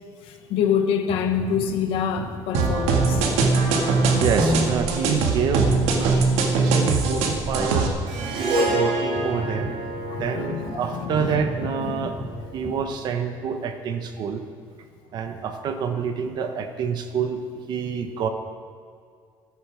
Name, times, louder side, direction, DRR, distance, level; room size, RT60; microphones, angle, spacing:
voice 1, 0.2-3.2 6.1-6.6 8.2-8.5 10.1-11.4 11.8-12.1, left 7 dB, 65° left, 6 dB, 1.3 m, -27 dB
sound 1, 1.1-13.5 14.1-14.2, equal, ahead, 3.2 m, -37 dB
sound 2, 2.5-7.9, right 4 dB, 90° right, 1.8 m, -21 dB
voice 2, 4.2-8.0 8.4-9.7 10.1-12.2 12.5-14.4 15.1-17.4 17.7-18.3, right 6 dB, 45° right, 7 dB, 1.0 m, -27 dB
Harp, 8.1-12.5, right 1 dB, 70° right, 3.3 m, -28 dB
13.5 x 9.5 x 6.2 m, 2.1 s
cardioid pair, 180°, 10 cm